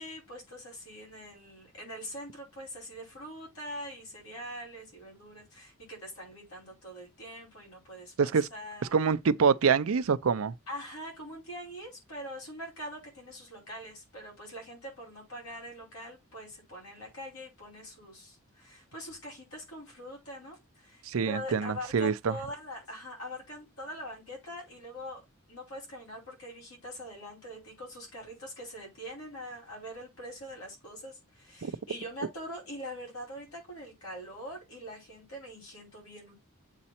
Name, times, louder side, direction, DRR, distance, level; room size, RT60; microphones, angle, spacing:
voice 1, 0.0-8.9 10.7-25.2 25.5-36.3, equal, 80° left, 5.2 m, -43 dB
voice 2, 8.2-8.5 8.9-10.5 21.1-22.3 31.6-31.7, right 6 dB, 70° right, 0.5 m, -26 dB
7.4 x 4.1 x 4.3 m
head